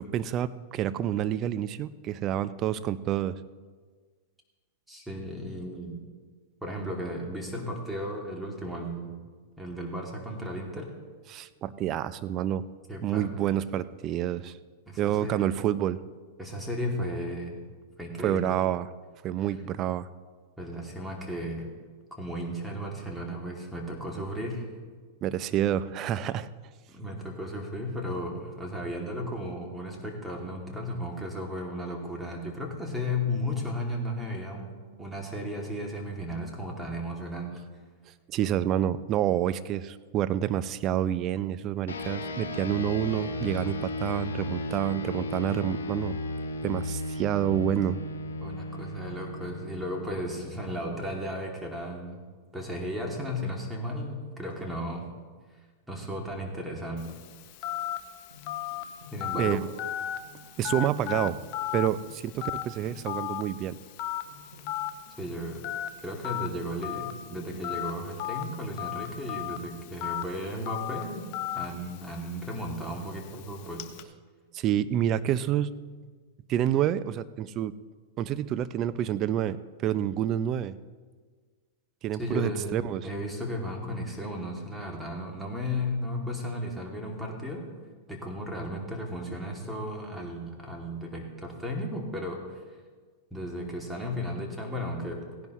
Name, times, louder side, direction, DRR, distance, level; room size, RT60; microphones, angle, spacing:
voice 1, 0.0-3.4 11.3-12.6 13.0-14.5 15.0-16.0 18.2-18.9 19.2-20.1 25.2-26.5 38.3-46.2 46.6-48.0 59.3-59.7 60.6-61.4 61.7-63.8 74.5-75.7 76.5-77.7 78.2-80.7 82.0-83.0, right 11 dB, 40° right, 16 dB, 0.5 m, -28 dB
voice 2, 4.9-6.0 6.6-9.1 9.6-10.9 12.9-13.5 14.9-15.6 16.4-17.6 18.0-18.5 20.6-21.7 22.1-24.7 26.9-34.7 35.0-37.5 48.4-52.2 52.5-55.1 55.9-57.1 59.1-59.6 65.2-65.6 66.0-71.3 71.5-73.8 82.2-82.8 83.0-87.6 88.1-92.6 93.3-95.2, equal, 5° right, 0 dB, 2.5 m, -35 dB
sound 1, 41.9-51.6, left 2 dB, 85° left, 1.1 m, -35 dB
sound 2, 54.5-54.9 56.4-56.5 58.3-62.4 62.8-63.3 64.2-66.1 67.1-67.8 68.2-68.3, left 1 dB, 80° right, 3.7 m, -52 dB
Telephone, 57.0-74.0, left 12 dB, 50° left, 0.8 m, -37 dB
17.0 x 10.5 x 3.1 m, 1.5 s
hypercardioid pair, 110°, 0 cm